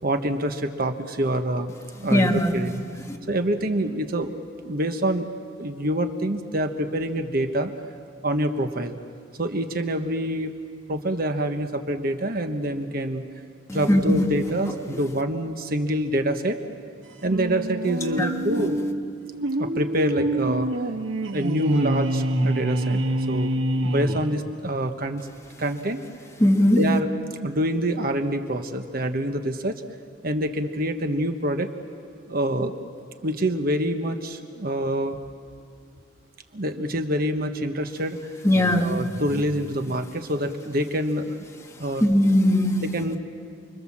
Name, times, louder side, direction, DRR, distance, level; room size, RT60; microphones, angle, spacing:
voice 1, 0.0-2.8 3.3-4.3 4.6-5.3 5.6-7.7 8.2-9.0 9.4-10.6 10.9-13.3 13.7-16.6 17.2-18.8 19.6-20.7 21.3-25.3 25.6-26.0 26.8-27.1 27.4-29.8 30.2-31.7 32.3-32.7 33.2-35.2 36.5-38.3 38.7-41.4 41.8-42.0 42.8-43.2, right 1 dB, 45° right, 7 dB, 1.2 m, -26 dB
voice 2, 2.1-2.5 3.1-3.2 13.7-14.3 18.2-18.3 18.6-18.7 26.4-26.8 38.4-38.9 42.0-42.8, left 1 dB, 15° left, 2 dB, 1.7 m, -19 dB
sound 1, 17.2-24.8, right 1 dB, 75° right, 1.4 m, -26 dB
29.5 x 23.0 x 7.4 m, 2.3 s
head